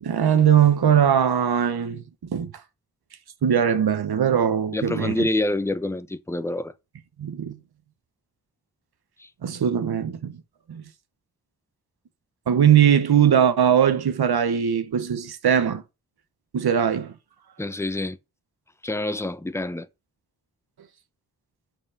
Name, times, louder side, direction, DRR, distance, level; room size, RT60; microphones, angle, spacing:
voice 1, 0.0-2.0 2.3-2.5 3.4-5.1 7.2-7.6 9.4-10.4 10.7-10.8 12.5-15.8 16.5-17.1, right 8 dB, 85° right, 1.0 m, -20 dB
voice 2, 4.7-6.7 9.2-9.3 17.6-18.2 18.8-19.9, left 2 dB, 5° left, 0.8 m, -27 dB
7.2 x 5.5 x 6.5 m
wide cardioid pair, 80°, 37 cm